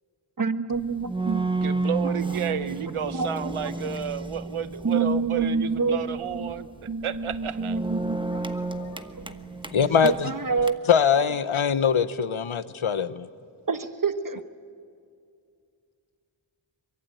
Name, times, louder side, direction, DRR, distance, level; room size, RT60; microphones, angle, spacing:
voice 1, 0.4-1.5 2.0-2.1 3.1-3.7 4.8-6.5 6.9-9.1 10.0-10.8 13.7-14.4, right 4 dB, 40° right, 1.4 m, -28 dB
sound 1, 0.7-10.7, right 3 dB, 10° right, 1.2 m, -32 dB
voice 2, 1.6-6.7 7.0-7.8, right 8 dB, 90° right, 0.9 m, -31 dB
voice 3, 9.7-10.3 10.9-13.3, left 7 dB, 75° left, 1.0 m, -22 dB
24.0 x 23.0 x 9.3 m
wide cardioid pair, 75°, 48 cm